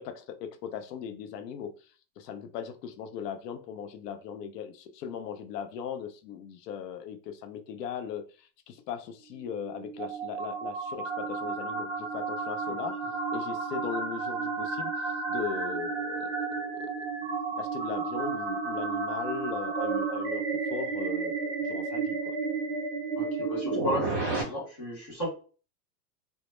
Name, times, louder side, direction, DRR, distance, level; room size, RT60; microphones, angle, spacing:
voice 1, 0.0-13.0 13.3-17.1 17.6-20.5 20.7-22.3, left 8 dB, 80° left, 0.6 m, -39 dB
sound 1, 9.3-24.4, right 4 dB, 25° right, 0.6 m, -32 dB
voice 2, 23.2-25.3, equal, 20° left, 0.4 m, -34 dB
2.0 x 2.0 x 3.0 m
supercardioid pair, 175°, 47 cm